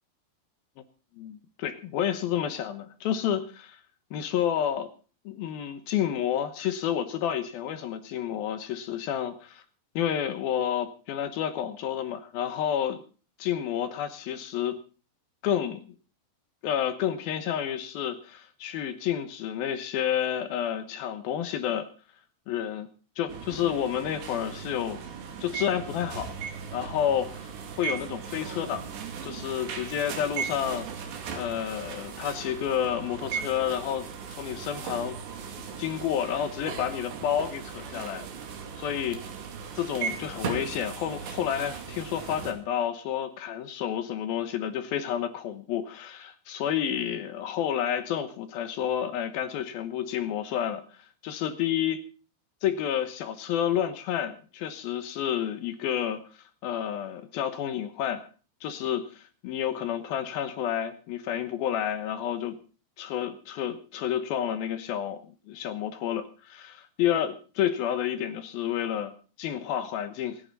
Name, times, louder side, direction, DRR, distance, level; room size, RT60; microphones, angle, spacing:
voice 1, 1.2-3.8 4.1-4.9 5.3-9.6 10.0-13.0 13.4-14.8 15.4-15.8 16.6-21.9 22.5-22.9 23.2-25.0 25.4-26.3 26.7-27.5 27.8-28.9 29.2-35.2 35.8-38.3 38.8-39.2 39.8-50.8 51.2-52.0 52.6-56.2 56.6-58.3 58.6-62.6 63.0-69.1 69.4-70.4, left 9 dB, 70° left, 10 dB, 2.8 m, -30 dB
sound 1, 23.3-42.5, right 6 dB, 90° right, 4.6 m, -38 dB
26.5 x 9.9 x 4.0 m, 0.38 s
omnidirectional pair, 4.7 m